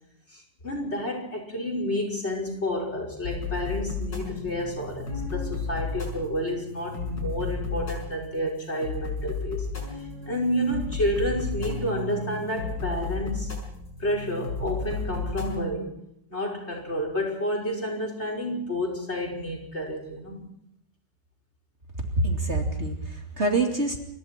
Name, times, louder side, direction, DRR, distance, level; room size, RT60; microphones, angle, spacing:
voice 1, 0.3-9.7 10.3-13.5 14.0-15.9 16.3-20.4, equal, 35° left, 1 dB, 5.5 m, -30 dB
sound 1, 3.2-15.6, left 4 dB, 80° left, 6.8 m, -33 dB
voice 2, 22.2-24.0, right 2 dB, 35° right, 2 dB, 3.0 m, -25 dB
30.0 x 25.0 x 4.5 m, 0.74 s
omnidirectional pair, 1.9 m